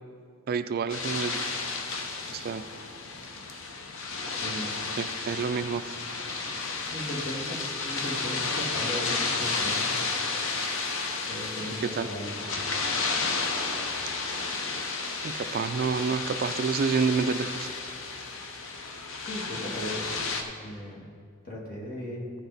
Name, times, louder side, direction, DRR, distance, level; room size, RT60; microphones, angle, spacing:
voice 1, 0.5-1.5 2.3-2.6 5.0-6.0 11.8-12.1 15.2-17.7, right 5 dB, 45° right, 10 dB, 0.3 m, -28 dB
sound 1, 0.9-20.4, left 4 dB, 65° left, 0.9 m, -32 dB
voice 2, 4.3-4.8 6.9-7.6 7.8-10.0 11.3-12.3 19.2-20.2 20.6-21.1 21.4-22.3, left 1 dB, 45° left, -3 dB, 1.8 m, -37 dB
15.0 x 6.1 x 4.0 m, 2.2 s
head